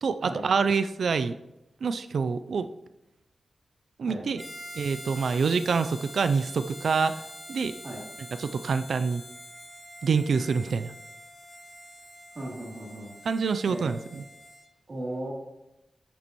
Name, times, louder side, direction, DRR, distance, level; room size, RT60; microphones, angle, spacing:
voice 1, 0.0-1.4 1.8-2.7 4.0-4.4 4.7-7.2 7.5-7.7 8.4-9.2 10.0-10.9 13.3-14.2, right 5 dB, 75° right, 11 dB, 0.4 m, -26 dB
Harmonica, 4.4-14.7, equal, 15° left, 2.4 m, -45 dB
voice 2, 12.3-13.1 13.7-13.9 14.9-15.3, right 1 dB, 50° right, -3 dB, 3.0 m, -36 dB
11.5 x 6.9 x 3.0 m, 0.91 s
cardioid pair, 75°, 0 cm